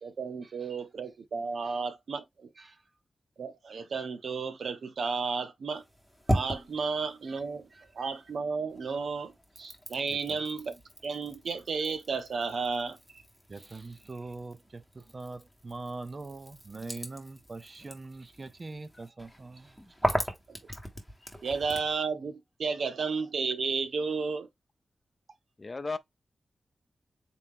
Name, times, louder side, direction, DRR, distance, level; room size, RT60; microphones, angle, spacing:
voice 1, 0.0-2.5 3.4-5.8 6.3-7.7 7.9-9.3 9.6-10.8 11.0-13.2 21.4-24.5, right 5 dB, 80° right, 0.8 m, -33 dB
sound 1, 5.7-8.4 8.7-22.0, equal, ahead, 1.6 m, -38 dB
voice 2, 13.5-19.7, right 3 dB, 45° right, 0.6 m, -42 dB
voice 3, 25.6-26.0, left 3 dB, 40° left, 0.5 m, -35 dB
4.2 x 2.8 x 3.7 m
cardioid pair, 60°, 0 cm